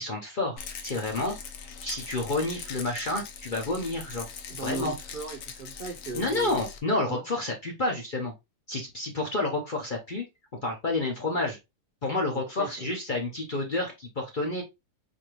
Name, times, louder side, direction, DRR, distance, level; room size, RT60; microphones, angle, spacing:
voice 1, 0.0-1.4 1.8-4.3 4.6-4.9 6.1-8.3 8.7-10.3 10.6-11.6 12.0-14.6, left 2 dB, 45° left, 0.7 m, -29 dB
Rattle, 0.6-6.8, left 6 dB, 70° left, 1.1 m, -41 dB
voice 2, 4.5-6.6 7.1-7.2 12.5-12.9, right 3 dB, 70° right, 0.5 m, -37 dB
4.4 x 2.7 x 3.0 m
omnidirectional pair, 1.8 m